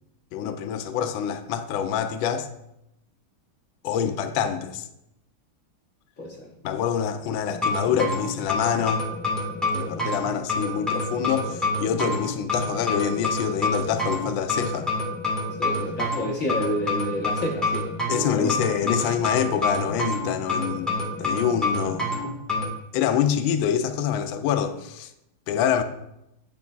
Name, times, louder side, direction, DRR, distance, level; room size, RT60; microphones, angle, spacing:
voice 1, 0.3-2.5 3.8-4.9 6.6-9.0 9.7-14.9 18.1-20.9 21.2-22.1 22.9-25.1 25.5-25.8, left 8 dB, 80° left, 1.3 m, -26 dB
voice 2, 6.2-6.5 15.6-17.9 18.1-18.6, left 1 dB, 50° left, 1.1 m, -29 dB
sound 1, 7.5-22.7, left 2 dB, ahead, 1.0 m, -27 dB
9.4 x 5.2 x 2.3 m
omnidirectional pair, 2.3 m